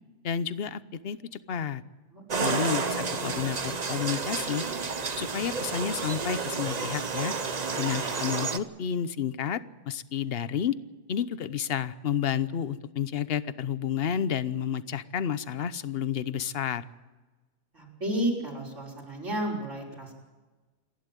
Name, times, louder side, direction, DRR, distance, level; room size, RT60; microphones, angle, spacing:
voice 1, 0.2-1.8 2.4-4.6 5.2-7.4 7.8-10.8 11.1-16.8, left 8 dB, 55° left, 14 dB, 1.0 m, -31 dB
voice 2, 2.1-2.6 17.7-20.1, right 1 dB, 80° right, -1 dB, 5.9 m, -32 dB
sound 1, 2.3-8.6, right 4 dB, 35° right, 1.0 m, -31 dB
28.0 x 11.5 x 9.1 m, 1.2 s
omnidirectional pair, 1.3 m